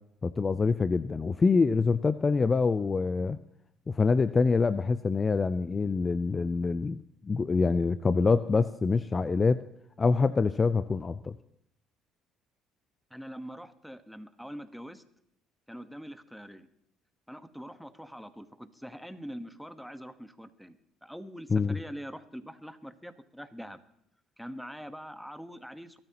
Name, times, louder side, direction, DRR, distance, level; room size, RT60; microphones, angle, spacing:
voice 1, 0.2-3.4 3.9-9.6 10.0-11.3 21.5-21.8, left 4 dB, 30° left, 14 dB, 0.5 m, -25 dB
voice 2, 13.1-15.0 15.7-16.7 17.3-23.8 24.4-26.0, equal, ahead, 11 dB, 1.3 m, -44 dB
22.5 x 13.0 x 3.0 m, 0.76 s
hypercardioid pair, 70°, 0 cm